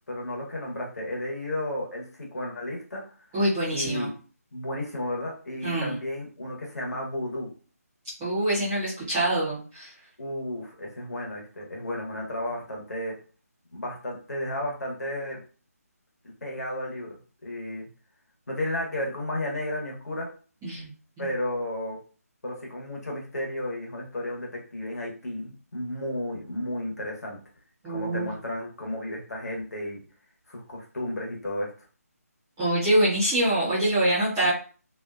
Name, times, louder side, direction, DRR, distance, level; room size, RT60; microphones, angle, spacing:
voice 1, 0.1-3.0 3.7-4.1 4.5-7.5 10.2-13.1 13.7-15.4 16.4-17.1 17.4-17.9 18.5-20.3 21.2-22.0 22.4-27.4 27.9-30.0 30.5-31.9, left 1 dB, 75° left, -1 dB, 1.1 m, -33 dB
voice 2, 3.3-4.1 5.6-6.0 8.2-9.9 20.6-20.9 21.2-21.3 27.8-28.3 32.6-34.5, right 1 dB, 5° right, -13 dB, 0.5 m, -25 dB
2.6 x 2.2 x 2.4 m, 0.39 s
hypercardioid pair, 180°, 9 cm